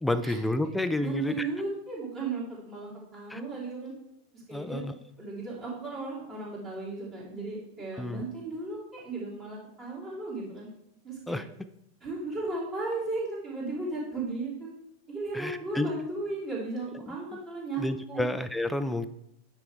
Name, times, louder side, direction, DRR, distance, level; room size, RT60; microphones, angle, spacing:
voice 1, 0.0-1.5 3.3-3.4 4.5-4.9 8.0-8.2 11.3-11.5 15.3-15.9 17.1-17.2 17.8-19.1, left 1 dB, 5° left, 10 dB, 0.4 m, -30 dB
voice 2, 1.0-3.9 4.3-4.8 5.2-10.7 11.0-11.4 12.0-14.7 15.1-18.3, right 3 dB, 30° right, -6 dB, 3.0 m, -35 dB
9.4 x 3.5 x 4.6 m, 0.79 s
figure-of-eight pair, 90°, 0 cm